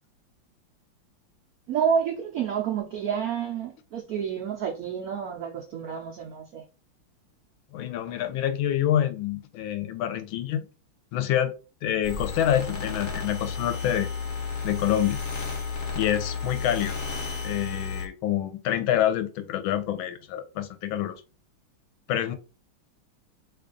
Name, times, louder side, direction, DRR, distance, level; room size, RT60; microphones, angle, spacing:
voice 1, 1.7-6.6, right 7 dB, 85° right, 0.8 m, -29 dB
voice 2, 7.7-10.7 11.1-11.5 11.8-14.1 14.6-15.2 15.9-17.0 17.4-21.2 22.1-22.3, left 11 dB, 80° left, 1.3 m, -27 dB
sound 1, 12.0-18.1, left 5 dB, 50° left, 0.9 m, -32 dB
3.2 x 2.4 x 3.7 m
omnidirectional pair, 2.2 m